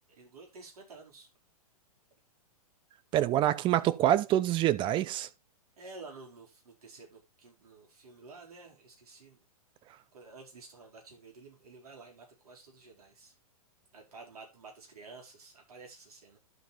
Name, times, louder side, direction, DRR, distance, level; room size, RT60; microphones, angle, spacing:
voice 1, 0.1-1.3 5.8-9.5 10.1-13.3 13.9-16.4, right 3 dB, 75° right, 5.0 m, -51 dB
voice 2, 3.1-5.3, right 12 dB, 25° right, 0.6 m, -26 dB
12.0 x 4.7 x 4.3 m
hypercardioid pair, 125°, 19 cm